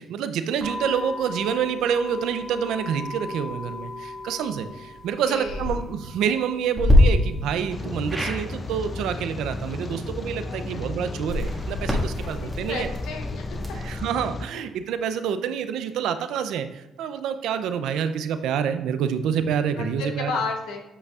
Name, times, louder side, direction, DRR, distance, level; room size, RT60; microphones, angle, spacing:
voice 1, 0.0-12.9 13.8-20.3, right 8 dB, 85° right, 10 dB, 0.5 m, -27 dB
sound 1, 0.6-11.2, left 2 dB, 50° right, 1.5 m, -40 dB
voice 2, 5.3-5.8 10.6-10.8 12.4-13.8 14.5-14.6 19.8-20.8, left 4 dB, 90° left, 3 dB, 0.9 m, -33 dB
sound 2, 5.4-5.7 6.7-7.0 8.1-8.4 11.1-14.0, left 1 dB, 5° right, 1.6 m, -26 dB
Rain, 7.7-14.5, left 2 dB, 35° left, 0.4 m, -34 dB
8.3 x 5.3 x 2.4 m, 0.94 s
cardioid pair, 90°, 0 cm